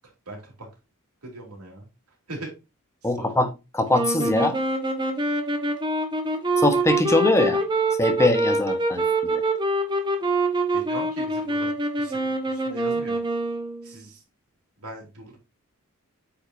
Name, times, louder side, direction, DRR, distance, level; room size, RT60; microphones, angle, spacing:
voice 1, 0.3-0.7 1.2-1.9 2.3-2.5 3.0-3.3 10.7-11.7 12.0-13.2 13.8-14.2 14.8-15.4, right 2 dB, 80° right, 3.1 m, -39 dB
voice 2, 3.0-4.6 6.6-7.6 8.0-9.4, left 2 dB, 15° left, 0.8 m, -22 dB
sound 1, 3.9-13.9, right 2 dB, 20° right, 1.2 m, -25 dB
8.5 x 4.8 x 2.7 m
head